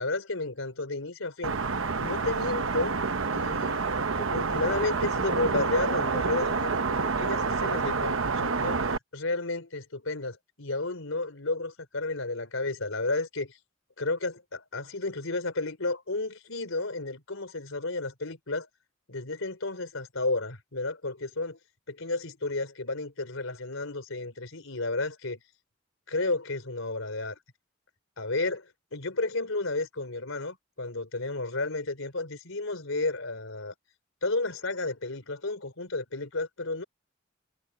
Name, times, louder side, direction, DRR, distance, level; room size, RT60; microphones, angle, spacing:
voice 1, 0.0-1.6 2.0-3.0 3.3-8.8 9.1-13.6 14.0-18.7 19.1-21.6 21.9-25.4 26.1-27.4 28.2-33.7 34.2-36.8, left 2 dB, 90° left, 3.8 m, -32 dB
sound 1, 1.4-9.0, right 4 dB, 85° right, 1.0 m, -28 dB
head